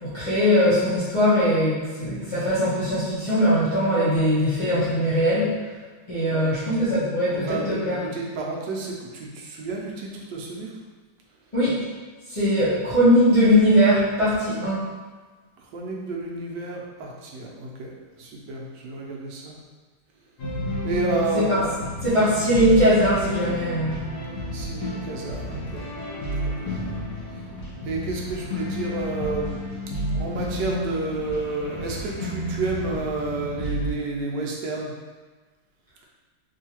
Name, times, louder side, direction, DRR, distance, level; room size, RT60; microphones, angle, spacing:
voice 1, 0.0-5.5 6.1-8.0 11.5-11.7 12.3-14.9 21.3-21.6 22.0-24.0, equal, 40° left, -14 dB, 0.4 m, -20 dB
voice 2, 7.3-10.7 12.3-12.4 15.7-17.9 18.2-19.6 20.8-21.7 24.5-25.9 26.4-26.8 27.8-29.6 30.0-34.9, right 3 dB, 70° right, -2 dB, 1.1 m, -30 dB
sound 1, 20.4-33.9, equal, 75° left, 1.4 m, -31 dB
3.7 x 2.7 x 2.9 m, 1.3 s
omnidirectional pair, 2.1 m